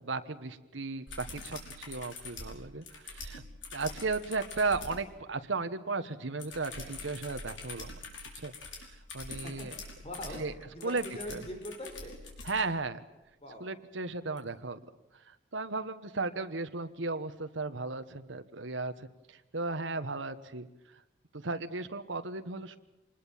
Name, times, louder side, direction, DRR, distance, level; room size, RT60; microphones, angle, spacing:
voice 1, 0.0-3.4 3.7-8.0 8.3-8.5 8.9-9.7 10.4-10.5 10.8-11.4 12.4-13.0 13.6-14.8 15.1-20.7 20.9-21.0 21.3-22.8, right 3 dB, 80° right, 8 dB, 1.3 m, -35 dB
sound 1, 1.1-5.0 6.4-12.6 14.4-14.5, left 3 dB, 75° left, 5.6 m, -45 dB
voice 2, 10.0-10.4 10.7-12.2 13.4-13.7, equal, 30° left, 5 dB, 4.4 m, -42 dB
26.0 x 20.5 x 7.3 m, 1.0 s
head